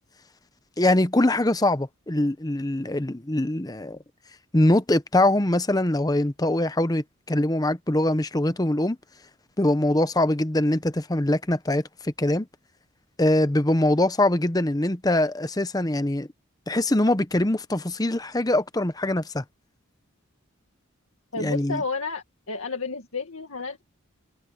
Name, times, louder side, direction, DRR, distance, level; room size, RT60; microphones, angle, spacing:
voice 1, 0.8-4.0 4.5-9.0 9.6-12.5 13.2-16.3 16.7-19.4 21.4-21.8, left 1 dB, 15° left, 0.8 m, -23 dB
voice 2, 21.3-23.8, left 4 dB, 80° left, 2.1 m, -31 dB
head